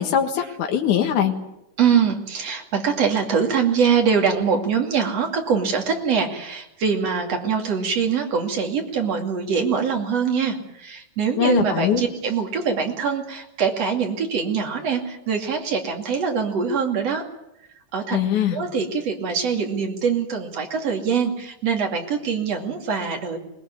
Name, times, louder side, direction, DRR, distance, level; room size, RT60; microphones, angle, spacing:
voice 1, 0.0-1.3 11.4-12.0 18.1-18.6, left 9 dB, 75° left, 3 dB, 3.0 m, -21 dB
voice 2, 1.8-17.3 17.9-18.2 18.5-23.4, right 6 dB, 55° right, 3 dB, 3.6 m, -23 dB
21.0 x 20.0 x 9.6 m, 0.84 s
omnidirectional pair, 3.5 m